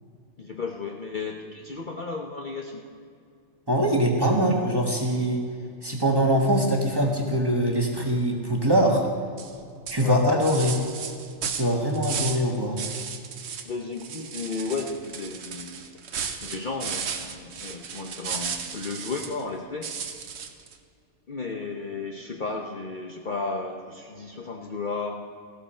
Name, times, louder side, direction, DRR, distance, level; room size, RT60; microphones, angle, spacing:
voice 1, 0.4-2.9 10.0-10.2 13.6-15.8 16.4-19.9 21.3-25.1, left 4 dB, 45° left, 1 dB, 0.8 m, -34 dB
voice 2, 3.7-5.4 5.8-9.0 9.9-10.8 11.5-12.8, equal, 20° right, 0 dB, 1.5 m, -23 dB
sound 1, 9.4-9.6 9.9-12.5 12.8-13.7 14.0-19.4 19.8-20.7, right 7 dB, 60° right, 1.0 m, -34 dB
15.0 x 12.5 x 4.4 m, 2.3 s
omnidirectional pair, 1.4 m